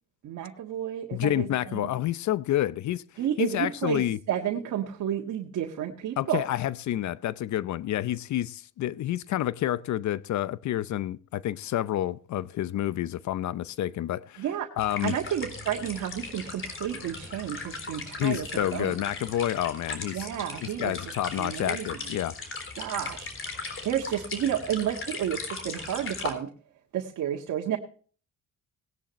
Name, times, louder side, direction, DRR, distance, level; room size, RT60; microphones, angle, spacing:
voice 1, 0.2-1.9 3.2-6.4 14.4-14.7 15.0-18.9 20.1-20.9 21.3-22.1 22.7-23.3 23.8-26.5 26.9-27.8, right 10 dB, 75° right, 1.7 m, -31 dB
voice 2, 1.1-3.0 3.4-4.2 6.2-14.4 14.8-15.1 18.2-20.3 20.8-22.3, left 12 dB, 70° left, 0.7 m, -29 dB
sound 1, 14.8-26.3, left 3 dB, 45° left, 3.7 m, -38 dB
18.5 x 10.5 x 3.1 m
cardioid pair, 90°, 30 cm